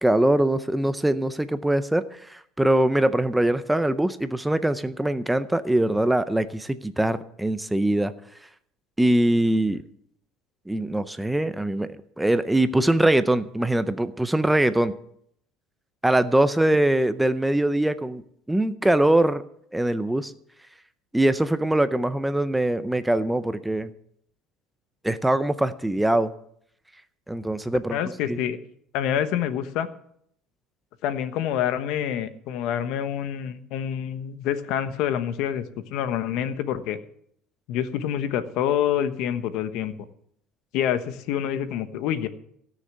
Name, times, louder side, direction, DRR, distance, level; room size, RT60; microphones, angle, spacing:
voice 1, 0.0-8.1 9.0-9.8 10.7-15.0 16.0-19.4 19.7-20.3 21.1-23.9 25.0-26.3 27.3-28.0 28.2-28.4, right 1 dB, 5° right, 12 dB, 0.5 m, -22 dB
voice 2, 27.9-28.6 28.9-29.9 31.0-35.6 35.9-37.0 37.7-39.9 40.7-42.3, left 10 dB, 65° left, 11 dB, 1.1 m, -27 dB
17.0 x 6.5 x 7.9 m, 0.69 s
cardioid pair, 140°, 0 cm